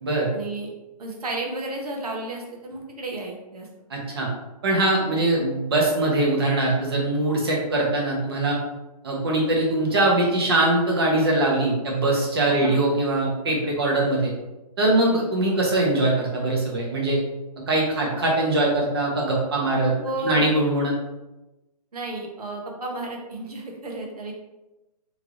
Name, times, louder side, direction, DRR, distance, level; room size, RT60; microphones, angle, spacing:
voice 1, 0.3-0.7 1.0-3.7 12.5-12.8 20.0-20.5 21.9-24.3, right 2 dB, 65° right, 0 dB, 1.3 m, -32 dB
voice 2, 3.9-4.3 4.6-8.6 9.0-14.3 14.8-17.2 17.7-19.9 20.2-20.9, right 2 dB, 35° right, -2 dB, 1.1 m, -22 dB
3.4 x 3.3 x 3.8 m, 1.0 s
hypercardioid pair, 170°, 21 cm